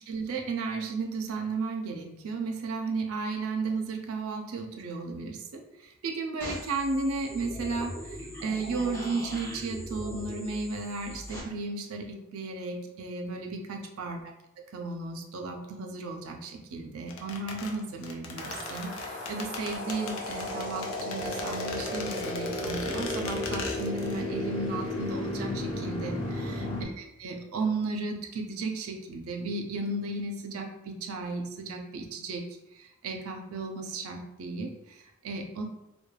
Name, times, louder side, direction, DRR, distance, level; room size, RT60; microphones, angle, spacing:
voice 1, 0.1-14.2 14.7-26.7 27.0-32.4 32.7-35.6, right 3 dB, 75° right, 3 dB, 0.4 m, -34 dB
sound 1, 6.4-11.4, equal, 10° left, 0.6 m, -40 dB
sound 2, 17.1-24.3 24.5-24.6, left 4 dB, 65° left, 0.4 m, -39 dB
sound 3, 18.4-26.8, left 1 dB, 25° left, 1.0 m, -34 dB
2.2 x 2.2 x 3.1 m, 0.90 s
head